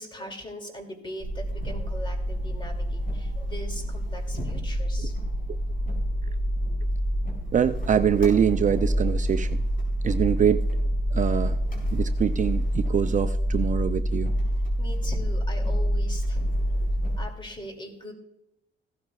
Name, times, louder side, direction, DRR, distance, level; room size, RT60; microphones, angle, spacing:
voice 1, 0.0-5.1 11.1-11.3 14.8-16.4 17.2-18.1, left 1 dB, 25° left, 4 dB, 2.6 m, -40 dB
sound 1, 1.2-17.2, equal, 45° left, 4.7 m, -27 dB
voice 2, 7.5-9.6 10.0-10.7 11.1-11.5 11.9-14.3, right 8 dB, 40° right, 10 dB, 0.4 m, -24 dB
15.5 x 12.5 x 2.4 m, 0.84 s
cardioid pair, 90°, 20 cm